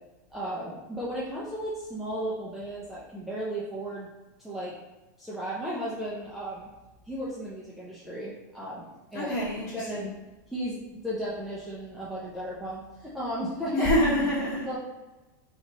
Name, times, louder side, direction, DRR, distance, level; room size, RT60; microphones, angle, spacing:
voice 1, 0.3-4.1 4.4-4.7 5.2-6.7 7.1-9.4 9.7-10.1 10.5-13.9 14.7-14.8, right 1 dB, ahead, -9 dB, 0.5 m, -35 dB
voice 2, 9.1-10.1 13.7-14.8, equal, 35° left, -5 dB, 1.5 m, -26 dB
4.2 x 2.9 x 4.0 m, 1.1 s
supercardioid pair, 180°, 10 cm